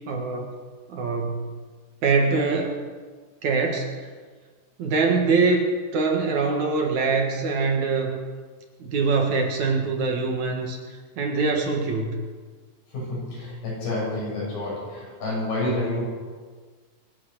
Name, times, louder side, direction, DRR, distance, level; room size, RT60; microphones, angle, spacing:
voice 1, 0.1-0.5 0.9-1.5 2.0-2.8 3.4-4.1 4.8-5.6 5.9-8.1 8.9-10.8 11.2-12.2, right 4 dB, 60° right, 1 dB, 2.8 m, -23 dB
voice 2, 12.9-16.0, left 2 dB, 75° left, -6 dB, 8.6 m, -29 dB
24.5 x 8.6 x 6.6 m, 1.5 s
omnidirectional pair, 4.1 m